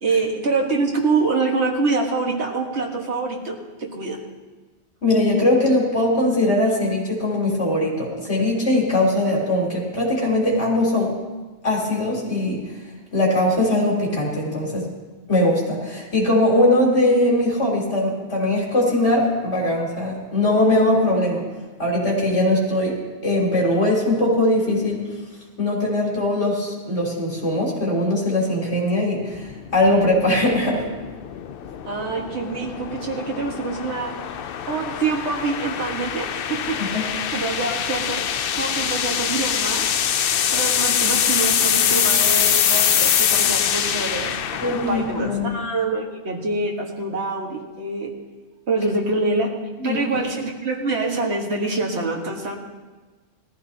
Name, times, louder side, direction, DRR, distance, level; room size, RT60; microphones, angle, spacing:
voice 1, 0.0-4.2 31.9-34.4 34.7-36.8 37.3-38.3 38.5-39.9 40.5-48.1 48.7-49.5 49.8-52.5, right 3 dB, 75° right, -1 dB, 1.8 m, -25 dB
voice 2, 5.0-11.1 11.6-12.6 13.1-14.9 15.3-21.4 21.8-25.1 25.6-30.8 36.8-37.0 44.6-45.6 49.8-50.0, left 1 dB, 80° left, -4 dB, 3.8 m, -20 dB
sound 1, 29.3-45.6, left 8 dB, 65° left, 0.7 m, -24 dB
19.5 x 14.5 x 2.8 m, 1.3 s
omnidirectional pair, 1.1 m